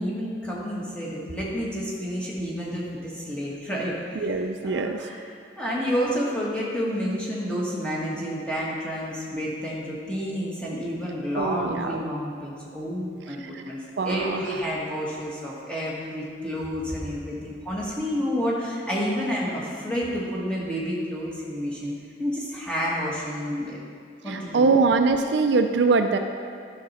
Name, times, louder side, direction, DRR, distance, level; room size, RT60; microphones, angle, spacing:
voice 1, 0.0-4.3 4.6-5.2 5.6-13.8 14.0-21.9 22.2-23.8 24.2-24.7, equal, 5° left, -6 dB, 1.5 m, -30 dB
voice 2, 4.2-5.0 11.4-12.0 13.4-13.6 14.0-14.4 24.3-26.2, right 4 dB, 65° right, 6 dB, 0.4 m, -23 dB
11.5 x 6.0 x 4.2 m, 2.2 s
head